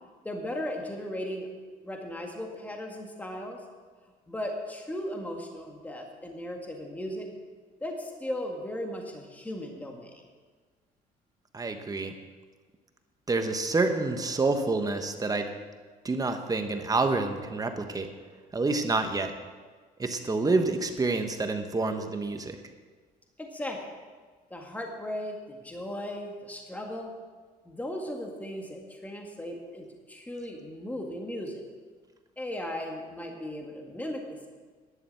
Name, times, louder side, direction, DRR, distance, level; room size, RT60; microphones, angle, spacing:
voice 1, 0.2-1.5 1.8-3.6 4.3-7.3 7.8-10.2 23.4-23.8 24.5-27.1 27.7-31.6 32.4-34.5, left 1 dB, 10° left, 1 dB, 1.8 m, -37 dB
voice 2, 11.5-12.1 13.3-15.5 16.0-18.1 18.5-19.3 20.0-22.6, right 3 dB, 20° right, 7 dB, 1.2 m, -28 dB
11.0 x 6.9 x 8.5 m, 1.4 s
cardioid pair, 110°, 17 cm